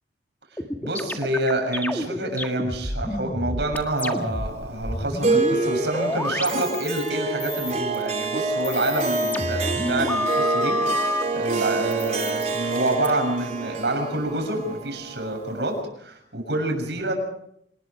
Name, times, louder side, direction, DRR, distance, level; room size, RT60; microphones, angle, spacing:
sound 1, 0.6-7.1 7.4-8.1 8.5-11.2 11.9-13.1, left 1 dB, 10° left, 1.7 m, -29 dB
voice 1, 0.8-11.1 11.3-17.1, right 1 dB, 75° right, 3 dB, 6.9 m, -27 dB
Harp, 5.2-15.8, right 3 dB, 40° right, 3.8 m, -27 dB
26.5 x 20.0 x 4.9 m, 0.74 s
head